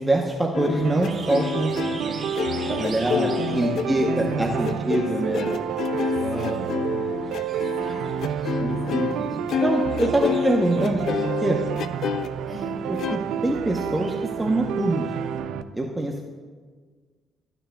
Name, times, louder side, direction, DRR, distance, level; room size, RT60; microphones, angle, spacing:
voice 1, 0.0-2.2 2.7-5.5 6.2-7.2 8.6-9.3 9.6-11.6 12.9-15.1 15.7-16.2, right 1 dB, 10° right, 0 dB, 0.8 m, -25 dB
sound 1, 0.5-9.2 9.5-12.3 13.0-13.2, left 7 dB, 70° left, 0.4 m, -28 dB
sound 2, 0.5-15.4, right 3 dB, 35° right, 1.6 m, -44 dB
sound 3, 0.8-15.6, right 9 dB, 85° right, 0.3 m, -29 dB
voice 2, 2.7-5.8 6.1-6.8 7.5-9.7 12.5-12.8, left 1 dB, 35° left, -1 dB, 3.0 m, -42 dB
13.5 x 9.1 x 2.3 m, 1.5 s
cardioid pair, 90°, 0 cm